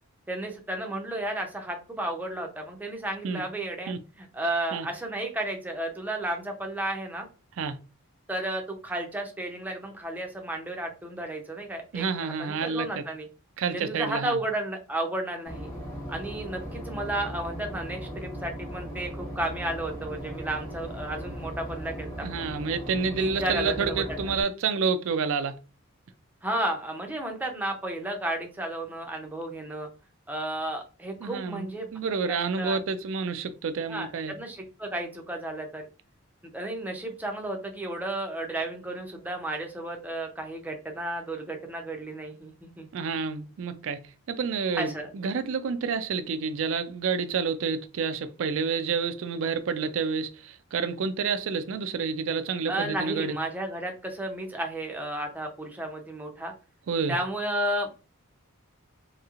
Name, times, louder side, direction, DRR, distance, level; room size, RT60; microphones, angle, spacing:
voice 1, 0.3-7.3 8.3-13.3 13.7-15.7 16.1-22.3 23.2-24.0 26.4-29.9 30.3-31.9 32.3-32.8 33.9-35.9 36.5-42.9 44.7-45.1 52.7-56.5 57.1-57.9, right 1 dB, 10° right, 0.5 m, -33 dB
voice 2, 11.9-13.0 13.6-14.4 22.2-25.6 31.2-31.7 31.9-34.3 42.9-44.0 44.3-53.4 56.9-57.2, right 5 dB, 65° right, 0.4 m, -29 dB
Boat Water vehicle / Engine, 15.5-24.4, equal, 15° left, 1.1 m, -38 dB
3.1 x 3.0 x 2.4 m
head